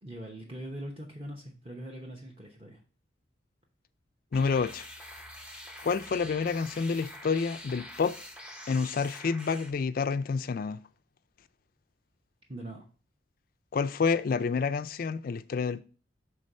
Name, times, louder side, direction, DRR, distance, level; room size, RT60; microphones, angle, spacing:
voice 1, 0.0-2.8 12.5-12.9, right 1 dB, 25° right, 0.9 m, -42 dB
voice 2, 4.3-4.9 5.8-8.2 8.7-10.8 13.7-15.8, left 5 dB, 45° left, 0.3 m, -28 dB
sound 1, 4.3-9.7, left 1 dB, 5° right, 0.6 m, -45 dB
6.4 x 3.7 x 5.3 m
head